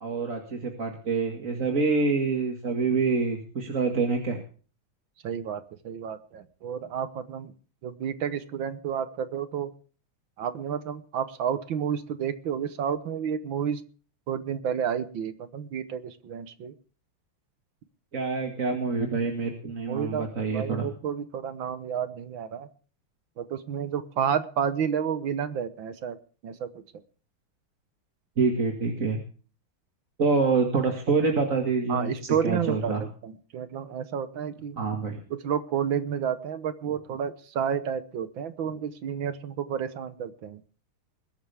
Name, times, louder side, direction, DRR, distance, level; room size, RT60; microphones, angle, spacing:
voice 1, 0.0-4.4 18.1-20.9 28.4-29.2 30.2-33.0 34.8-35.2, right 4 dB, 40° right, 2 dB, 2.2 m, -26 dB
voice 2, 5.2-7.5 7.8-9.7 10.4-13.8 14.3-16.7 19.9-20.3 20.5-22.7 23.4-26.2 26.4-26.7 31.9-34.8 35.3-40.6, right 8 dB, 65° right, 12 dB, 1.7 m, -30 dB
21.0 x 12.5 x 3.5 m, 0.40 s
omnidirectional pair, 2.4 m